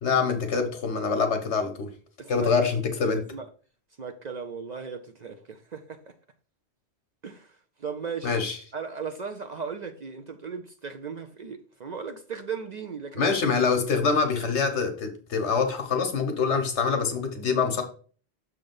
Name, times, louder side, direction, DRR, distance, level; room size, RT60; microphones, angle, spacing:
voice 1, 0.0-1.9 2.3-3.3 8.2-8.6 13.1-17.8, left 5 dB, 80° left, 1.4 m, -25 dB
voice 2, 2.2-2.5 3.3-3.5 4.0-6.1 7.2-8.4 8.7-13.4, right 5 dB, 50° right, 0.5 m, -37 dB
6.7 x 3.5 x 5.3 m
omnidirectional pair, 1.2 m